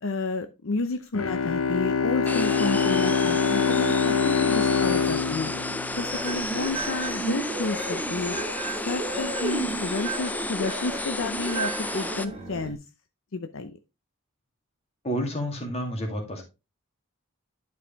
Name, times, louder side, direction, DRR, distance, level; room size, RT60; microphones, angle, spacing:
voice 1, 0.0-5.5 6.0-8.4 8.8-12.8 13.3-13.8, left 3 dB, 60° left, 0.6 m, -31 dB
Bowed string instrument, 1.1-6.7, left 5 dB, 75° left, 1.0 m, -25 dB
sound 1, 2.3-12.3, left 2 dB, 5° left, 0.4 m, -32 dB
sound 2, 5.9-12.7, right 3 dB, 25° right, 2.3 m, -34 dB
voice 2, 15.0-16.4, equal, 30° left, 2.1 m, -30 dB
11.0 x 4.8 x 3.5 m
head